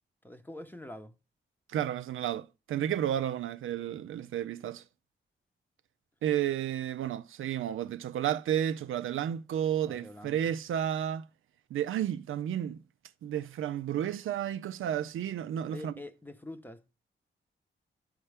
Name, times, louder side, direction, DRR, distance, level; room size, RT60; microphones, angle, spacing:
voice 1, 0.2-1.1 9.9-10.5 15.7-16.9, left 1 dB, 10° left, 0.8 m, -45 dB
voice 2, 1.7-4.8 6.2-11.3 11.7-12.8 13.2-15.9, right 10 dB, 80° right, 0.4 m, -32 dB
12.0 x 4.4 x 3.3 m
cardioid pair, 85°, 21 cm